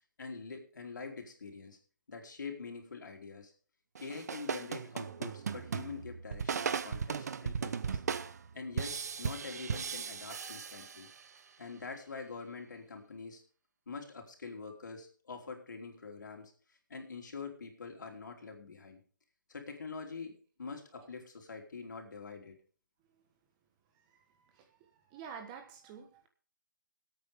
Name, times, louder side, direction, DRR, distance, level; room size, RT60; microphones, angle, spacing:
voice 1, 0.2-1.8 2.1-3.5 4.0-8.0 8.5-11.1 11.6-13.4 13.9-16.5 16.9-19.0 19.5-22.5, left 4 dB, 70° left, 3 dB, 3.3 m, -45 dB
sound 1, 4.0-11.4, right 6 dB, 55° right, 0.8 m, -37 dB
voice 2, 25.1-26.3, right 7 dB, 20° right, 5 dB, 1.3 m, -47 dB
20.5 x 8.6 x 3.6 m, 0.42 s
hypercardioid pair, 165°, 10 cm